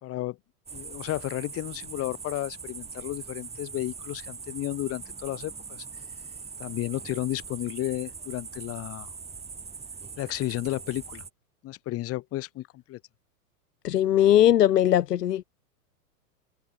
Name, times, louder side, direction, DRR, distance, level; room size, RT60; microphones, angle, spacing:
voice 1, 0.0-0.4 0.7-5.5 6.6-9.1 10.2-11.2 11.6-13.0, left 16 dB, 30° left, 1.9 m, -32 dB
sound 1, 0.7-11.3, right 5 dB, 15° right, 4.4 m, -42 dB
voice 2, 13.8-15.4, left 11 dB, 85° left, 1.1 m, -20 dB
hypercardioid pair, 125°, 47 cm